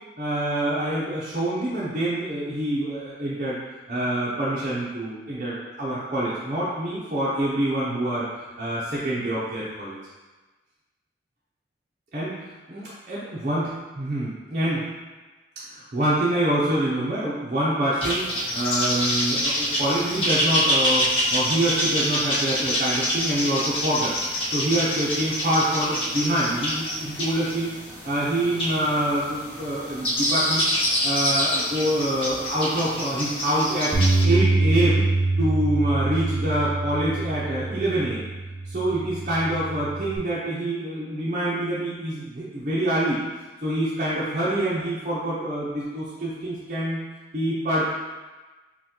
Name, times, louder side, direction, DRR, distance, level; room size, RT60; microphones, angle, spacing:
voice 1, 0.2-3.6 3.9-8.2 8.6-10.0 12.1-13.7 14.0-14.8 15.7-27.7 28.0-30.7 31.0-34.0 34.2-35.1 35.4-38.3 38.7-43.2 43.6-47.0 47.3-47.8, right 1 dB, 40° right, -9 dB, 0.6 m, -26 dB
sound 1, 18.0-34.2, equal, 30° left, 0.9 m, -26 dB
Bass guitar, 33.9-40.2, right 2 dB, 10° right, 0.8 m, -24 dB
5.8 x 2.2 x 2.9 m, 1.2 s
head